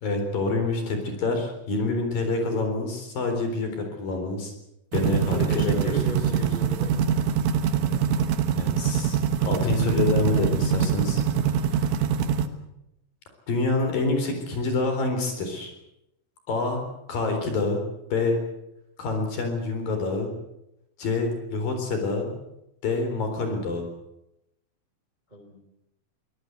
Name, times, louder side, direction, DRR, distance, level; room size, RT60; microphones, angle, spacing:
voice 1, 0.0-4.5 4.9-5.9 8.6-11.2 11.7-11.9 13.5-15.7 16.5-16.8 17.1-17.8 18.1-18.4 19.0-20.3 21.0-22.4 22.8-23.9, left 3 dB, 50° left, 5 dB, 5.4 m, -27 dB
sound 1, 4.9-12.5, right 7 dB, 85° right, 4.0 m, -24 dB
voice 2, 5.0-6.9 25.3-25.6, right 1 dB, 10° right, 5 dB, 3.1 m, -35 dB
24.0 x 19.0 x 8.1 m, 0.84 s
omnidirectional pair, 5.5 m